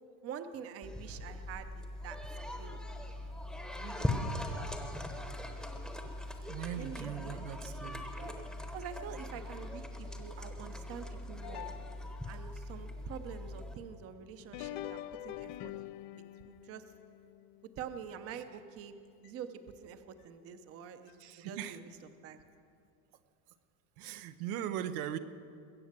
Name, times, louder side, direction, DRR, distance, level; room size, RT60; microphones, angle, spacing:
voice 1, 0.2-2.2 2.6-2.8 3.7-4.1 4.4-4.6 6.8-7.3 8.2-8.4 8.7-11.7 12.3-15.7 16.1-16.8 17.8-18.9 19.2-21.9 22.2-22.4, right 7 dB, 30° right, 10 dB, 0.7 m, -46 dB
sound 1, 0.8-13.7, left 1 dB, ahead, 0.9 m, -40 dB
voice 2, 6.5-8.1 18.3-18.4 21.2-21.8 24.0-25.2, right 10 dB, 90° right, 10 dB, 1.0 m, -39 dB
sound 2, 11.4-12.6 14.4-18.8 19.2-19.3 20.2-20.3 21.1-21.2, left 13 dB, 45° left, 0.4 m, -46 dB
21.5 x 8.4 x 7.4 m, 2.4 s
cardioid pair, 160°, 44 cm